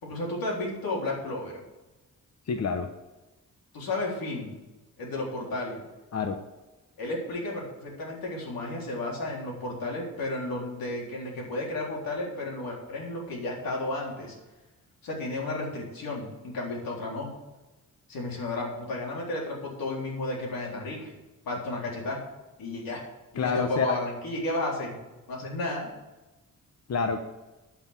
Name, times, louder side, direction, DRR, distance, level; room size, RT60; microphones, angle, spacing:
voice 1, 0.0-1.6 3.7-4.5 5.0-5.8 7.0-14.4 15.0-17.3 18.1-21.2 21.5-22.2 22.6-23.0 23.3-25.0 25.3-25.9, left 2 dB, 80° left, -2 dB, 3.8 m, -33 dB
voice 2, 2.5-2.9 6.1-6.4 23.4-24.0 26.9-27.2, left 5 dB, 50° left, 6 dB, 1.0 m, -27 dB
11.5 x 6.0 x 8.4 m, 1.1 s
cardioid pair, 105°, 34 cm